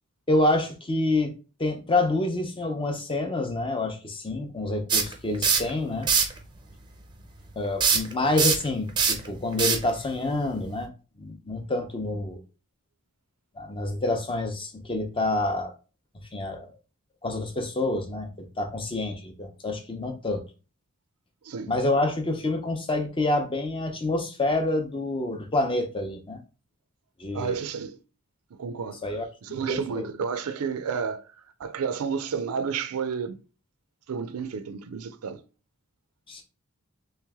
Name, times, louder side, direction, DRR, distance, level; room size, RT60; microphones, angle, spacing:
voice 1, 0.3-1.3 1.6-6.1 7.6-10.9 11.2-12.4 13.6-15.7 16.3-16.7 17.2-18.3 18.6-20.4 21.7-26.4 27.2-27.6 29.0-30.1 36.3-36.4, left 2 dB, 25° left, 0.6 m, -27 dB
sound 1, 4.9-5.7 6.0-6.4 7.8-10.8, right 6 dB, 20° right, 0.5 m, -23 dB
voice 2, 27.3-28.0 28.5-29.0 29.4-31.3 31.6-33.4 34.1-35.4, right 6 dB, 75° right, 0.4 m, -31 dB
3.3 x 3.1 x 3.5 m
head